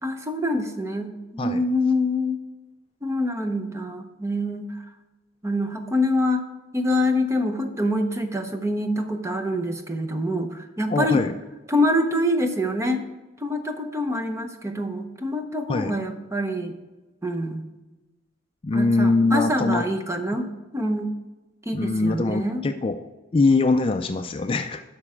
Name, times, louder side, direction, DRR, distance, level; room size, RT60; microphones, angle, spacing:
voice 1, 0.0-2.4 3.0-4.7 5.4-6.4 6.7-11.2 11.7-13.0 13.4-16.7 17.2-17.6 18.7-20.5 20.7-21.1 21.7-22.6, left 1 dB, 15° right, 6 dB, 0.8 m, -25 dB
voice 2, 10.9-11.3 15.7-16.0 18.6-19.9 21.7-23.1 23.3-24.8, left 3 dB, 25° left, 7 dB, 0.3 m, -22 dB
12.0 x 6.0 x 4.9 m, 1.1 s
head